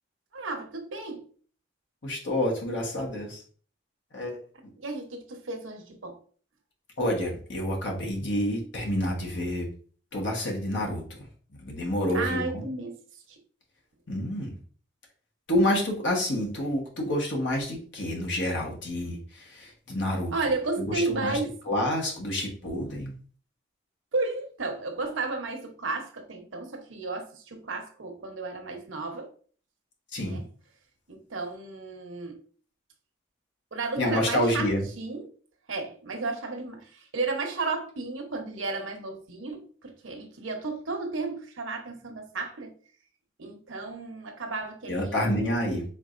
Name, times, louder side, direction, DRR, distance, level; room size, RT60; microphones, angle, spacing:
voice 1, 0.3-1.3 4.8-6.2 12.1-13.0 13.3-13.4 20.3-21.5 24.1-29.3 30.2-30.4 31.1-32.4 33.7-34.7 35.0-35.3 35.7-42.7 43.4-45.3, right 3 dB, 85° right, 0.9 m, -33 dB
voice 2, 2.0-3.4 4.1-4.4 7.0-9.7 10.1-12.6 14.1-14.6 15.5-20.3 20.8-21.4 21.7-23.2 30.1-30.4 34.0-34.9 44.9-45.8, left 1 dB, 65° left, 1.2 m, -28 dB
4.6 x 3.7 x 2.5 m
head